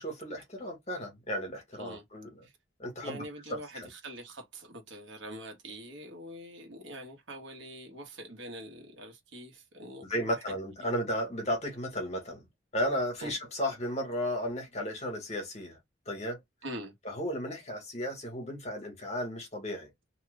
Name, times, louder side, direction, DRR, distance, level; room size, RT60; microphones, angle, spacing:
voice 1, 0.0-2.4 2.8-3.2 3.5-3.9 10.1-12.4 12.7-15.8 16.1-16.4 17.0-19.9, equal, 35° left, 1.3 m, -34 dB
voice 2, 3.0-10.9 13.2-13.4 16.6-16.9, right 1 dB, 75° right, 1.3 m, -44 dB
3.0 x 2.4 x 3.2 m
head